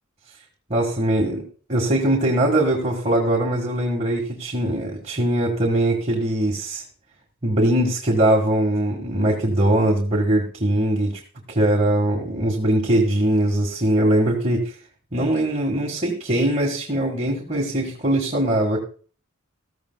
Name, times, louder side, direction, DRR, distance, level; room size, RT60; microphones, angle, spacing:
voice 1, 0.7-1.4 1.7-6.8 7.4-11.2 11.5-14.6 15.1-18.8, right 1 dB, 35° right, -1 dB, 1.7 m, -21 dB
15.5 x 13.5 x 2.3 m, 0.40 s
head